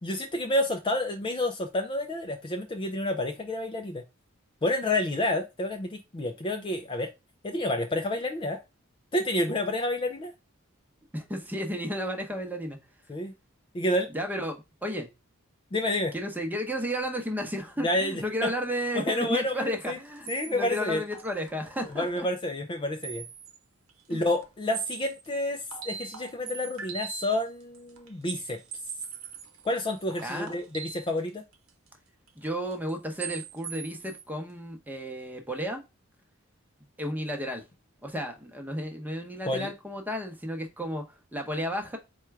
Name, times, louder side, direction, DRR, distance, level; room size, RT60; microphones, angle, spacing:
voice 1, 0.0-4.0 4.6-7.1 7.4-8.6 9.1-10.3 13.1-13.3 13.7-14.1 15.7-16.1 17.8-18.5 18.9-20.0 20.3-21.0 21.9-23.3 24.1-28.6 29.6-31.4 39.5-39.7, left 1 dB, 25° left, 0.4 m, -29 dB
voice 2, 11.1-12.8 14.1-15.1 16.1-22.3 24.1-24.3 30.2-30.6 32.4-35.8 37.0-37.6 38.0-41.0 41.3-42.0, equal, 10° right, 0.8 m, -33 dB
sound 1, 20.3-22.2 23.0-23.6 23.9-25.3 25.6-27.4 27.7-31.9 32.3-33.0 33.2-34.2, right 7 dB, 80° right, 0.8 m, -41 dB
4.3 x 2.3 x 4.5 m
head